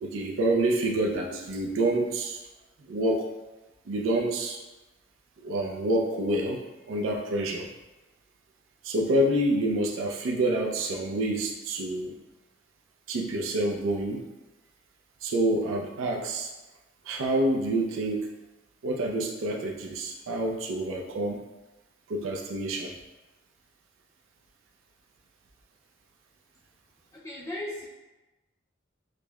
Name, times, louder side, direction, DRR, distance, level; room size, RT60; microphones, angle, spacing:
voice 1, 0.0-2.4 2.9-3.3 3.9-4.6 5.4-6.6 6.9-7.7 8.8-12.2 13.1-14.2 15.2-16.5 17.1-18.3 18.8-21.4 22.1-22.9, right 1 dB, 85° right, 0 dB, 0.4 m, -27 dB
voice 2, 27.1-27.9, left 1 dB, 15° left, -6 dB, 0.4 m, -36 dB
5.0 x 2.0 x 2.2 m, 1.1 s
head